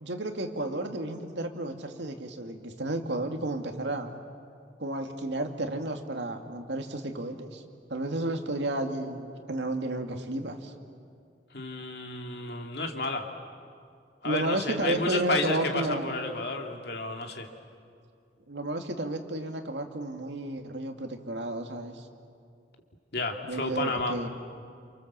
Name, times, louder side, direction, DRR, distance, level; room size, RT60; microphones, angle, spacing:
voice 1, 0.0-4.2 4.8-7.6 7.9-10.7 14.2-16.1 18.5-22.0 23.4-24.3, right 1 dB, 75° right, 4 dB, 2.2 m, -32 dB
voice 2, 11.5-13.3 14.2-17.5 23.1-24.2, left 3 dB, 60° left, 3 dB, 2.4 m, -31 dB
28.5 x 28.0 x 7.4 m, 2.3 s
head